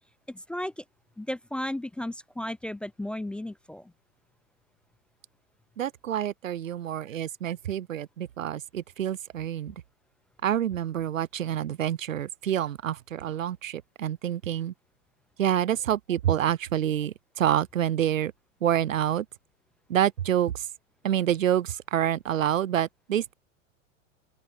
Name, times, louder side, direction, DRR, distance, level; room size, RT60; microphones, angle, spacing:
voice 1, 0.3-0.8 1.2-3.9, left 1 dB, 5° left, 0.4 m, -34 dB
voice 2, 5.8-9.8 10.4-14.7 15.4-18.3 18.6-19.3 19.9-20.7 21.0-23.3, right 10 dB, 85° right, 0.5 m, -27 dB
open air
figure-of-eight pair, 95°, 38 cm